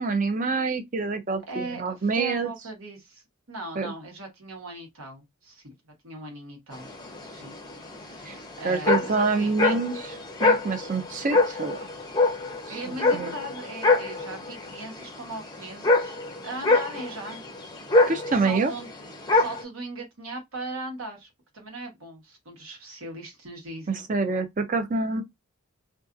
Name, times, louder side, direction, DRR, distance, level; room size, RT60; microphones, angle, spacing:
voice 1, 0.0-2.5 3.8-3.9 8.3-8.4 8.6-11.8 13.1-13.4 18.1-18.7 23.9-25.2, right 3 dB, 35° right, 0.4 m, -26 dB
voice 2, 1.5-3.2 3.5-6.9 7.2-7.5 8.0-9.5 12.7-17.4 17.8-18.0 18.4-24.1, right 2 dB, 70° right, 1.2 m, -39 dB
sound 1, 6.7-19.6, left 3 dB, 20° left, 0.5 m, -26 dB
2.5 x 2.3 x 2.5 m
head